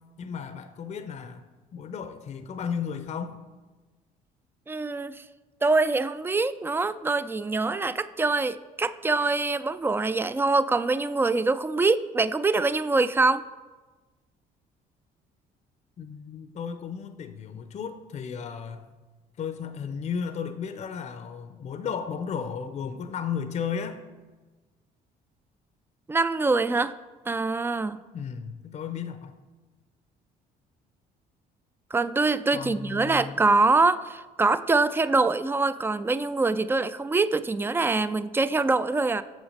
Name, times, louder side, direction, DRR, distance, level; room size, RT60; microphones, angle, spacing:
voice 1, 0.2-1.4 1.7-3.4 16.0-18.9 19.4-24.0 28.1-29.3 32.5-33.4, left 7 dB, 40° left, 9 dB, 0.6 m, -34 dB
voice 2, 4.7-5.2 5.6-13.4 26.1-26.9 27.3-28.0 31.9-39.2, right 3 dB, 15° right, 15 dB, 0.3 m, -24 dB
7.2 x 6.2 x 6.4 m, 1.3 s
cardioid pair, 110°, 17 cm